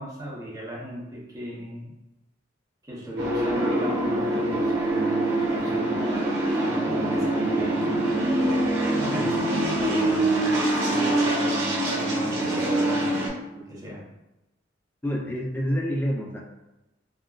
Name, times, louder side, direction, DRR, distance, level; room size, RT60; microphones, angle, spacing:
voice 1, 0.0-1.9 2.8-5.9 6.5-7.9 9.0-9.4 9.8-14.0, equal, 20° right, -5 dB, 0.7 m, -37 dB
sound 1, 3.2-13.3, right 1 dB, 85° right, 1.1 m, -24 dB
voice 2, 15.0-16.4, equal, 10° left, -1 dB, 0.3 m, -27 dB
3.6 x 2.1 x 2.3 m, 0.96 s
head